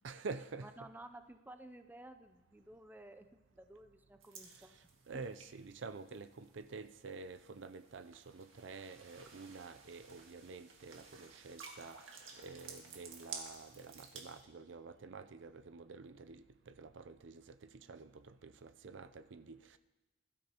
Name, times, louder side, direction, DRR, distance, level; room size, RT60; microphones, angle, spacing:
voice 1, 0.0-0.7 4.5-19.8, right 4 dB, 65° right, 11 dB, 0.5 m, -49 dB
voice 2, 0.6-4.8, right 1 dB, 10° right, 8 dB, 0.5 m, -54 dB
sound 1, 4.2-14.4, right 5 dB, 85° right, 1.9 m, -54 dB
21.0 x 12.5 x 2.9 m, 1.1 s
head